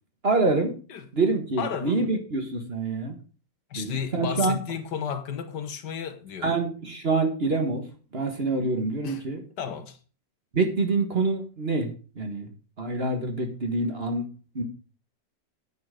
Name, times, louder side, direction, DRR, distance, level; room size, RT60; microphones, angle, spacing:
voice 1, 0.2-0.7 1.1-3.2 3.7-4.6 6.4-7.8 8.1-9.4 10.5-12.5 12.8-14.3 14.6-14.7, right 3 dB, 35° right, 1.6 m, -26 dB
voice 2, 1.6-2.0 3.7-6.5 9.0-9.2 9.6-10.0, left 7 dB, 70° left, 1.6 m, -33 dB
9.9 x 7.5 x 5.1 m
omnidirectional pair, 2.0 m